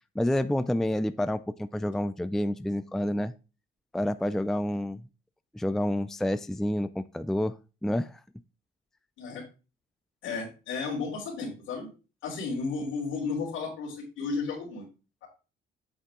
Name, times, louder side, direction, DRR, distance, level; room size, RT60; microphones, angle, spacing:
voice 1, 0.2-3.3 3.9-5.0 5.5-7.6 7.8-8.2, left 1 dB, ahead, 12 dB, 0.4 m, -28 dB
voice 2, 10.2-11.9 12.2-14.8 15.2-15.3, left 4 dB, 90° left, -6 dB, 3.7 m, -33 dB
8.4 x 7.2 x 3.7 m, 0.31 s
cardioid pair, 90°, 20 cm